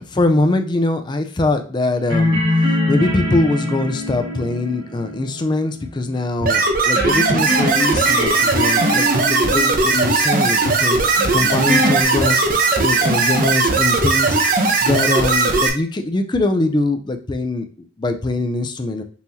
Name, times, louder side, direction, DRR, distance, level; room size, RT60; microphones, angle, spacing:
voice 1, 0.0-2.4 2.9-12.4 12.8-14.4 14.8-19.0, left 2 dB, 25° left, 6 dB, 0.4 m, -22 dB
sound 1, 2.1-6.2 6.9-12.0, left 1 dB, 85° right, 1.6 m, -24 dB
sound 2, 6.4-15.7, right 3 dB, 50° right, 0.7 m, -18 dB
5.5 x 3.0 x 2.7 m, 0.40 s
head